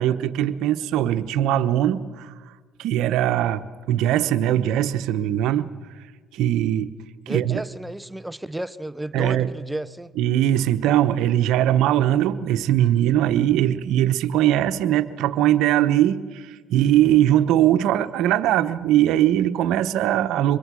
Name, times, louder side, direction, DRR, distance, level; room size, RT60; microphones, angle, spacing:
voice 1, 0.0-2.3 2.8-5.7 6.3-6.9 7.3-7.6 9.1-9.5 10.2-20.6, right 12 dB, 75° right, 11 dB, 1.0 m, -21 dB
voice 2, 7.3-10.1, right 1 dB, 10° right, 17 dB, 0.7 m, -32 dB
24.5 x 21.5 x 6.3 m, 1.5 s
supercardioid pair, 70°, 0 cm